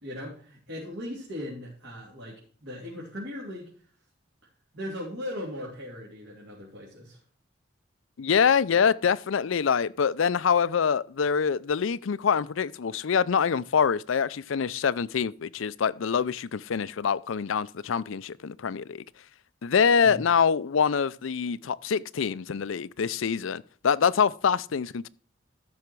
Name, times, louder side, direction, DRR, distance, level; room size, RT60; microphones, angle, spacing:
voice 1, 0.0-3.7 4.7-7.2 20.0-20.2, left 1 dB, 70° right, 3.5 m, -38 dB
voice 2, 8.2-19.0 19.6-25.1, left 6 dB, 85° left, 0.5 m, -25 dB
14.0 x 5.7 x 4.6 m
head